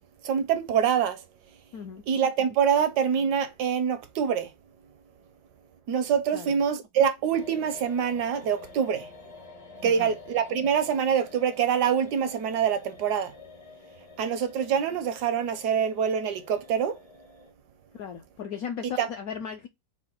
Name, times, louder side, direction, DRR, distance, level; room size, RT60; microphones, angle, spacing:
voice 1, 0.2-1.2 2.1-4.5 5.9-9.1 9.8-13.3 14.2-17.0 19.0-19.1, right 8 dB, 75° right, 1.1 m, -25 dB
voice 2, 1.7-2.0 6.3-6.5 9.8-10.1 17.9-19.7, left 7 dB, 75° left, 0.8 m, -36 dB
sound 1, 7.3-17.5, left 4 dB, 45° left, 0.4 m, -48 dB
4.8 x 2.2 x 4.3 m
omnidirectional pair, 2.0 m